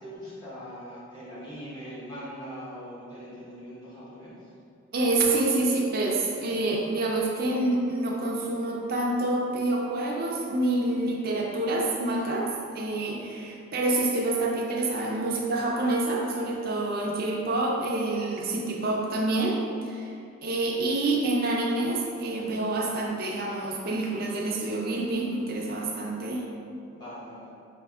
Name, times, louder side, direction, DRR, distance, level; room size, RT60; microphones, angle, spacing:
voice 1, 0.0-4.3 15.0-15.2 26.9-27.5, equal, 20° left, -11 dB, 1.0 m, -41 dB
voice 2, 4.9-19.6 19.8-20.1 20.4-26.4, right 2 dB, 45° right, -2 dB, 0.5 m, -27 dB
4.3 x 3.0 x 2.3 m, 2.5 s
head